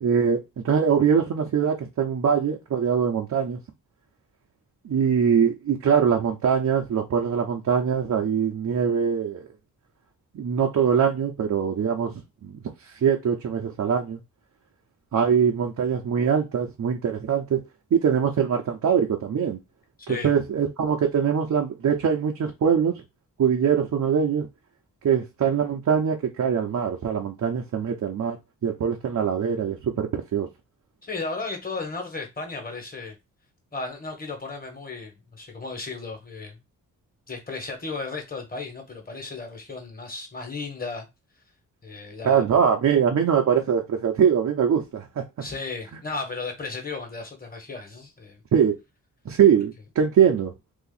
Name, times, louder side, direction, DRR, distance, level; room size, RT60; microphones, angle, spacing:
voice 1, 0.0-3.6 4.8-9.4 10.3-12.1 12.4-12.6 13.0-14.2 15.1-17.6 17.9-19.6 20.1-23.0 23.4-24.5 25.0-28.4 28.6-30.5 42.2-45.2 48.5-48.8 49.3-50.5, right 7 dB, 55° right, 0.8 m, -22 dB
voice 2, 20.0-20.3 31.0-33.1 33.7-36.6 37.3-41.1 41.8-42.4 45.4-48.4, left 3 dB, 25° left, 1.5 m, -35 dB
2.8 x 2.5 x 4.0 m
cardioid pair, 65°, 34 cm